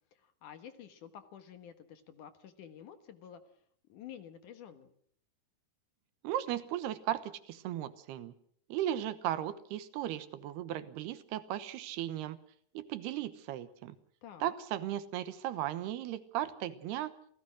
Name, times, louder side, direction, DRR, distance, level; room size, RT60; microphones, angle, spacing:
voice 1, 0.1-3.4 3.9-4.9 14.2-14.5, left 9 dB, 60° left, 10 dB, 2.5 m, -50 dB
voice 2, 6.2-8.3 8.7-12.4 12.7-14.0 14.4-17.1, right 12 dB, 80° right, 13 dB, 3.1 m, -36 dB
28.0 x 17.0 x 6.3 m, 0.64 s
omnidirectional pair, 4.7 m